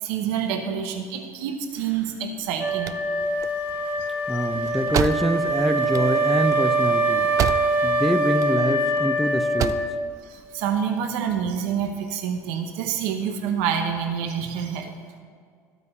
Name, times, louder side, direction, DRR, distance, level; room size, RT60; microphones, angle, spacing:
voice 1, 0.0-3.0 10.2-14.9, right 7 dB, 80° right, 5 dB, 0.9 m, -27 dB
sound 1, 2.4-8.0 8.3-9.0 9.4-10.0, right 9 dB, 45° right, 0.4 m, -30 dB
Wind instrument woodwind instrument, 2.6-10.1, right 1 dB, 30° right, 1.5 m, -24 dB
voice 2, 4.3-7.3 7.8-9.7, equal, ahead, 9 dB, 0.6 m, -25 dB
12.0 x 8.4 x 4.4 m, 2.1 s
supercardioid pair, 100°, 8 cm